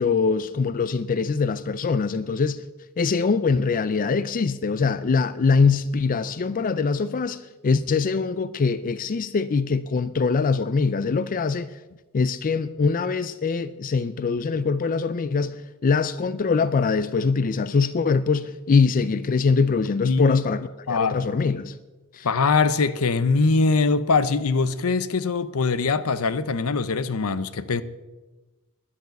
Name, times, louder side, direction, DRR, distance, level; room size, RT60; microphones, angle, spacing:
voice 1, 0.0-2.6 3.0-11.8 12.1-21.8 22.1-22.3, left 4 dB, 40° left, 0.4 m, -23 dB
voice 2, 20.0-20.4 20.9-21.3 22.2-27.8, left 4 dB, 75° left, 0.7 m, -22 dB
10.5 x 10.5 x 8.1 m
head